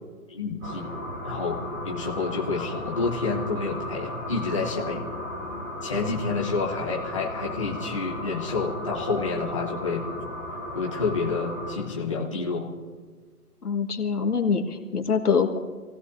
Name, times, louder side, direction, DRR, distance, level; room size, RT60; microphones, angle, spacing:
voice 1, 0.3-0.9 1.2-1.6 1.8-5.0 5.8-10.0 10.7-12.7, left 4 dB, 20° left, -4 dB, 0.9 m, -29 dB
sound 1, 0.6-11.8, left 1 dB, 15° right, 3.9 m, -35 dB
voice 2, 13.6-15.6, left 5 dB, 70° left, 4 dB, 1.8 m, -24 dB
26.5 x 16.5 x 2.7 m, 1.5 s
hypercardioid pair, 165°, 47 cm